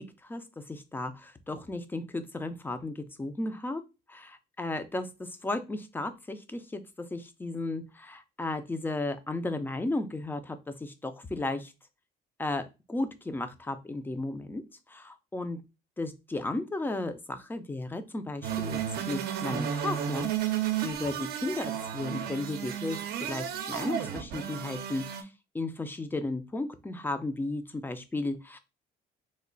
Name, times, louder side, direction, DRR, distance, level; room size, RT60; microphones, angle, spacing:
voice 1, 0.0-3.8 4.1-11.7 12.4-14.6 14.9-15.6 16.0-18.8 19.1-20.3 20.8-25.3 25.5-28.6, left 2 dB, 10° left, 10 dB, 0.4 m, -34 dB
sound 1, 18.4-25.2, right 9 dB, 70° right, 0.5 m, -33 dB
3.1 x 2.1 x 3.8 m, 0.27 s
cardioid pair, 110°, 17 cm